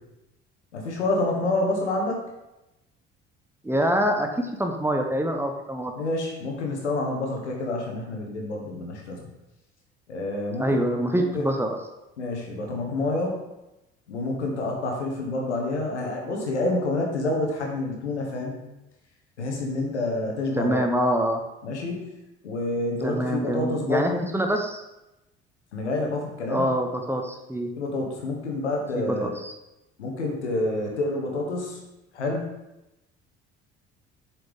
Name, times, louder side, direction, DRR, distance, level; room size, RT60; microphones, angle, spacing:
voice 1, 0.7-2.2 6.0-9.2 10.1-10.8 11.1-11.5 12.2-13.4 14.1-18.6 19.4-20.8 21.6-22.1 22.4-24.2 25.7-26.7 27.8-29.3 30.0-31.8 32.1-32.5, left 2 dB, 80° left, 0 dB, 1.2 m, -28 dB
voice 2, 3.6-5.9 10.6-11.8 20.6-21.4 23.0-24.8 26.5-27.7 29.0-29.5, equal, 5° right, 3 dB, 0.8 m, -25 dB
7.7 x 4.4 x 3.6 m, 0.95 s
figure-of-eight pair, 55°, 34 cm